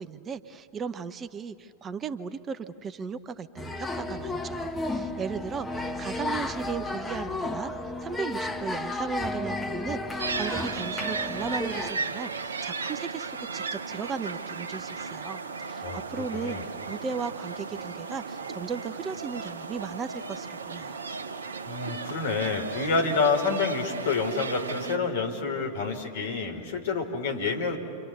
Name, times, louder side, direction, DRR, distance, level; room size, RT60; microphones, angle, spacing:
voice 1, 0.0-21.0, right 6 dB, 25° right, 13 dB, 0.8 m, -36 dB
sound 1, 3.6-11.9, left 2 dB, 10° left, 1.6 m, -33 dB
sound 2, 10.2-25.0, right 4 dB, 70° right, 0.9 m, -35 dB
voice 2, 15.8-16.6 21.7-27.8, left 4 dB, 60° left, 4 dB, 3.5 m, -28 dB
29.0 x 26.0 x 6.9 m, 2.6 s
figure-of-eight pair, 90°, 0 cm